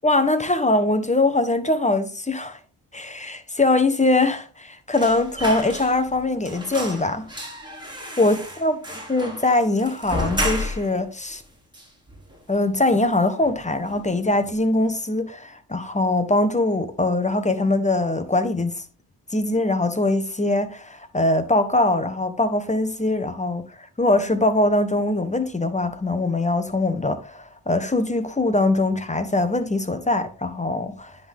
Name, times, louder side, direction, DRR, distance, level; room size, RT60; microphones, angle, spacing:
voice 1, 0.0-2.6 2.9-7.3 8.2-8.8 9.1-11.4 12.5-18.8 19.3-23.6 24.0-31.2, left 2 dB, 15° left, 1.1 m, -22 dB
sound 1, 4.9-6.2 6.4-11.0 11.3-11.4 11.7-12.6 12.9-13.1 13.4-14.1 14.4-14.6, equal, 10° right, 2.9 m, -32 dB
9.9 x 4.0 x 3.6 m
supercardioid pair, 55°, 47 cm